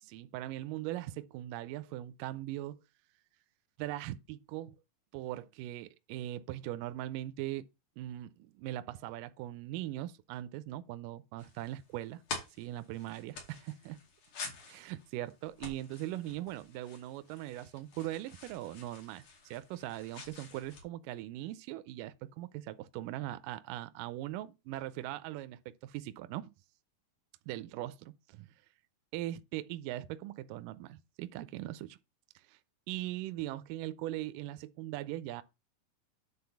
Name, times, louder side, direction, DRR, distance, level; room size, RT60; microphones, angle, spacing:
voice 1, 0.0-2.8 3.8-4.8 5.1-7.6 8.0-12.2 12.6-14.0 14.6-26.5 27.5-27.9 28.3-28.5 29.1-32.0 32.5-32.6 32.9-35.4, right 14 dB, 80° right, 2.1 m, -40 dB
sound 1, 11.4-20.8, left 4 dB, 60° left, 3.9 m, -48 dB
9.7 x 3.8 x 6.9 m
omnidirectional pair, 4.1 m